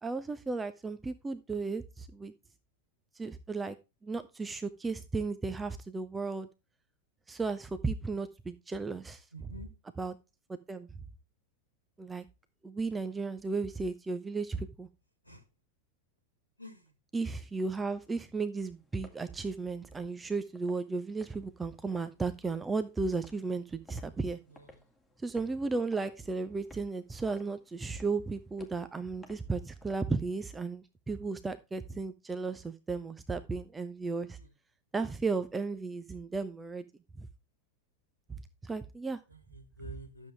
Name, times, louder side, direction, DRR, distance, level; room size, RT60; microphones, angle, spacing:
voice 1, 0.0-2.3 3.1-3.8 4.0-6.5 7.3-9.5 10.0-10.1 10.5-10.9 12.0-12.2 12.6-14.9 17.1-24.4 25.2-34.4 34.9-36.8 37.2-37.3 38.3-39.2, right 4 dB, 10° right, 10 dB, 0.8 m, -35 dB
voice 2, 9.3-9.7 15.2-15.4 16.6-16.9 24.5-24.8 34.4-34.5 39.3-40.3, right 1 dB, 90° left, 10 dB, 1.5 m, -49 dB
sound 1, 18.7-30.0, left 1 dB, 5° left, 2.3 m, -59 dB
11.5 x 7.4 x 3.3 m, 0.27 s
figure-of-eight pair, 90°, 0 cm